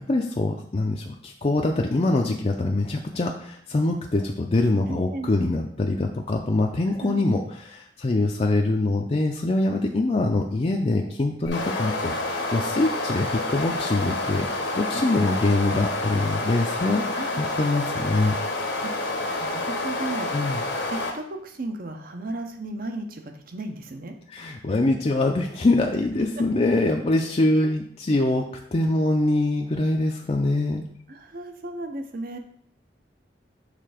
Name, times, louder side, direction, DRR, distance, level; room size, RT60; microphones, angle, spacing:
voice 1, 0.0-18.3 20.3-20.6 24.3-30.8, left 2 dB, 35° left, 1 dB, 0.5 m, -24 dB
voice 2, 4.9-5.3 7.0-7.3 15.2-15.8 17.1-17.4 18.8-24.1 31.1-32.4, right 2 dB, 55° right, 5 dB, 0.8 m, -35 dB
sound 1, 11.5-21.1, left 2 dB, 80° left, 1.2 m, -28 dB
6.6 x 3.4 x 5.0 m, 0.67 s
head